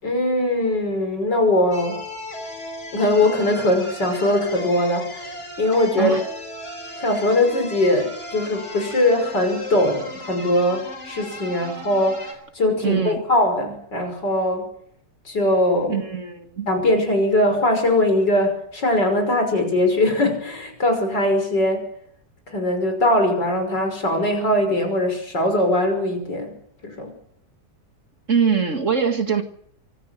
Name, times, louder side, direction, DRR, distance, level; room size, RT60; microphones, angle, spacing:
voice 1, 0.0-2.0 2.9-6.2 7.0-14.6 15.2-16.0 16.7-21.9 22.5-26.5 26.8-27.1, left 1 dB, 70° left, 5 dB, 6.3 m, -21 dB
sound 1, 1.7-12.3, left 1 dB, 40° left, 4.3 m, -36 dB
voice 2, 12.8-13.2 15.9-16.7 28.3-29.4, right 6 dB, 45° right, 6 dB, 2.3 m, -22 dB
24.5 x 14.5 x 7.6 m, 0.65 s
omnidirectional pair, 1.9 m